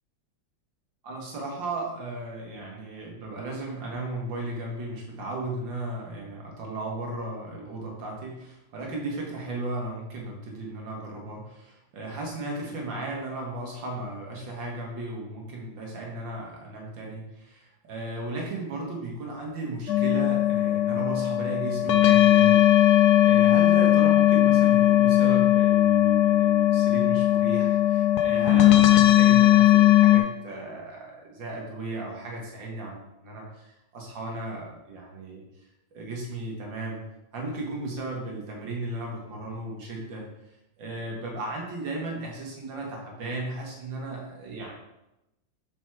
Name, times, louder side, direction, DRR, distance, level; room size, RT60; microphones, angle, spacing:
voice 1, 1.0-35.4 35.9-37.0 37.3-40.2 40.8-44.7, right 2 dB, 75° right, -1 dB, 2.3 m, -35 dB
sound 1, 19.9-30.2, left 13 dB, 70° left, 1.0 m, -19 dB
6.7 x 4.9 x 4.8 m, 0.92 s
omnidirectional pair, 2.1 m